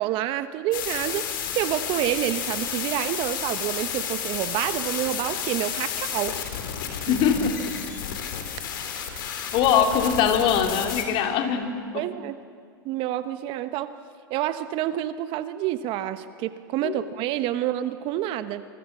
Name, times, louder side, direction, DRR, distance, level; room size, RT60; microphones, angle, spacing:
voice 1, 0.0-6.4 7.0-7.1 9.3-9.4 11.9-12.4 12.8-13.9 14.3-18.6, right 13 dB, 50° right, 12 dB, 1.2 m, -28 dB
sound 1, 0.7-11.0, left 8 dB, 75° left, 4.1 m, -31 dB
voice 2, 7.1-7.7 9.5-12.0 16.8-17.0, left 7 dB, 45° left, 4 dB, 3.2 m, -22 dB
27.5 x 23.5 x 7.4 m, 2.2 s
hypercardioid pair, 105°, 12 cm